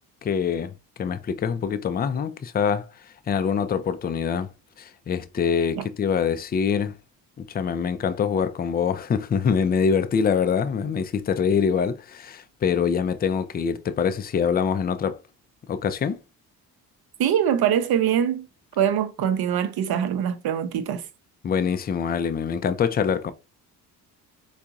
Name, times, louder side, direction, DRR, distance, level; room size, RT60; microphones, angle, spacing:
voice 1, 0.2-2.9 3.3-4.5 4.8-6.9 7.4-15.2 15.7-16.2 21.4-23.3, left 6 dB, 20° left, 0.4 m, -24 dB
voice 2, 17.2-18.5 18.8-21.0, right 9 dB, 50° right, 0.8 m, -23 dB
4.5 x 2.4 x 2.5 m
hypercardioid pair, 45°, 48 cm